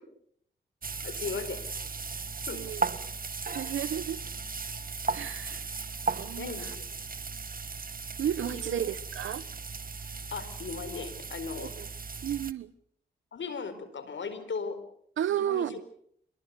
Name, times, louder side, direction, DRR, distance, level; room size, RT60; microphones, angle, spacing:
sound 1, 0.8-12.5, right 4 dB, 45° right, 1.6 m, -36 dB
voice 1, 1.0-1.9 2.5-2.7 6.4-6.8 8.4-8.8 10.3-11.7 13.3-14.8 15.3-15.7, left 5 dB, 75° left, 4.5 m, -37 dB
voice 2, 2.5-2.8 3.5-4.2 5.1-5.6 6.1-6.7 8.2-9.5 11.6-11.9 12.2-12.7 15.2-15.8, right 10 dB, 90° right, 1.0 m, -33 dB
26.0 x 22.0 x 6.8 m
supercardioid pair, 40°, 20 cm